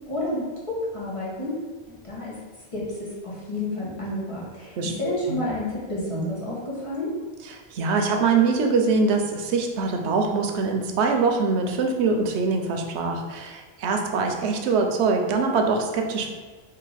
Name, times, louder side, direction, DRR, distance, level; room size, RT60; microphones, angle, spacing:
voice 1, 0.1-1.5 1.9-2.3 2.7-7.1, left 1 dB, 30° left, -7 dB, 1.1 m, -30 dB
voice 2, 7.5-16.3, right 4 dB, 90° right, 3 dB, 0.9 m, -23 dB
3.2 x 2.7 x 3.9 m, 1.4 s
omnidirectional pair, 1.1 m